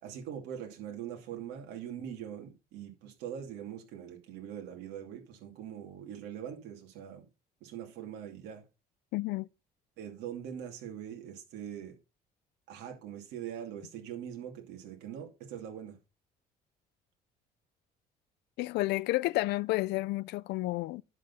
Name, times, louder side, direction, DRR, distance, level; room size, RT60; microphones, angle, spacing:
voice 1, 0.0-7.2 7.6-8.6 10.0-12.0 12.7-16.0, right 9 dB, 85° right, 2.6 m, -42 dB
voice 2, 9.1-9.5 18.6-21.0, left 19 dB, 85° left, 0.5 m, -31 dB
11.0 x 6.6 x 5.5 m
cardioid pair, 110°, 17 cm